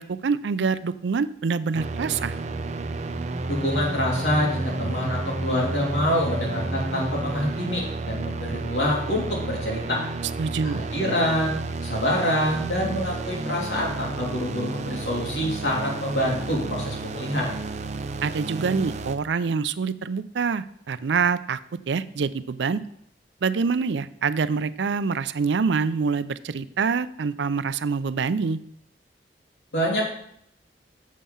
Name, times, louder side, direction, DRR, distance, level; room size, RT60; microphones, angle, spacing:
voice 1, 0.0-2.3 10.4-10.9 18.2-21.6 21.9-22.8 23.4-28.6, right 5 dB, 85° right, 14 dB, 0.4 m, -25 dB
sound 1, 1.7-19.2, right 3 dB, 40° right, 0.6 m, -31 dB
voice 2, 3.5-10.1 10.6-17.5 29.7-30.0, equal, 85° left, -3 dB, 3.2 m, -26 dB
7.5 x 5.5 x 7.0 m, 0.71 s
head